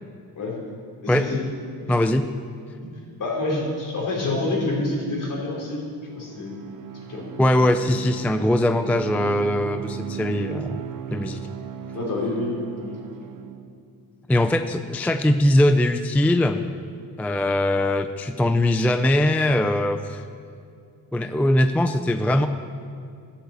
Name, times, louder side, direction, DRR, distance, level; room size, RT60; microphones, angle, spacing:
voice 1, 1.0-1.4 1.9-2.0 3.2-5.8 6.2-6.5 7.1-7.3 11.9-13.0, left 2 dB, 55° left, -2 dB, 3.7 m, -27 dB
voice 2, 1.9-2.3 7.4-10.8 11.1-11.4 14.3-16.6 17.2-20.2 21.1-22.5, left 1 dB, 5° left, 9 dB, 0.3 m, -21 dB
Bowed string instrument, 6.1-13.8, right 10 dB, 55° right, 0.9 m, -36 dB
13.5 x 7.2 x 8.1 m, 2.4 s
cardioid pair, 140°, 37 cm